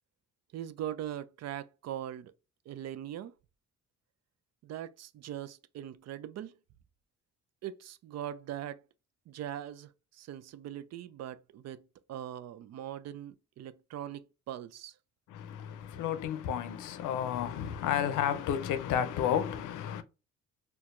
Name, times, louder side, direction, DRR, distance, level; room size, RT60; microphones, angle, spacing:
voice 1, 0.5-2.3 2.7-3.3 4.6-6.6 7.6-8.8 9.3-14.9, right 11 dB, 60° right, 0.4 m, -41 dB
voice 2, 15.3-20.0, left 9 dB, 85° left, 0.6 m, -32 dB
4.4 x 2.3 x 2.5 m
cardioid pair, 90°, 30 cm